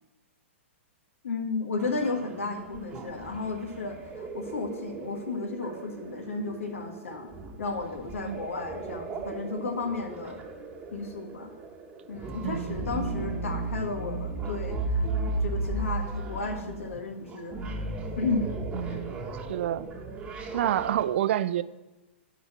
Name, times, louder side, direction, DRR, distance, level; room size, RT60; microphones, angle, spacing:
voice 1, 1.2-7.3 7.6-10.4 10.9-11.5 12.1-17.6 18.2-18.6 18.9-19.0, left 3 dB, 80° left, 5 dB, 1.6 m, -33 dB
sound 1, 1.8-21.0, right 2 dB, 15° right, 1.1 m, -35 dB
voice 2, 12.4-12.9 18.7-19.2 19.5-19.9 20.5-21.6, right 12 dB, 60° right, 16 dB, 0.4 m, -28 dB
10.5 x 4.1 x 7.2 m, 1.1 s
hypercardioid pair, 135°, 7 cm